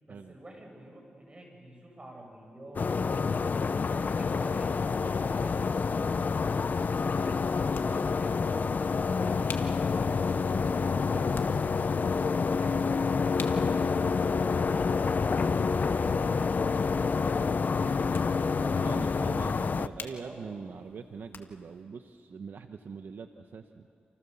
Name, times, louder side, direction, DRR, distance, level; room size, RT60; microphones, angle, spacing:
voice 1, 0.0-10.3 10.8-11.8 12.3-18.9 20.1-20.6, right 1 dB, 30° right, 1 dB, 7.9 m, -48 dB
sound 1, 2.8-19.9, left 5 dB, 55° left, 0.7 m, -28 dB
sound 2, 5.4-21.8, left 5 dB, 75° left, 1.7 m, -51 dB
voice 2, 12.8-13.1 18.6-23.8, right 5 dB, 70° right, 7 dB, 1.0 m, -42 dB
29.0 x 29.0 x 7.1 m, 2.4 s
cardioid pair, 75°, 4 cm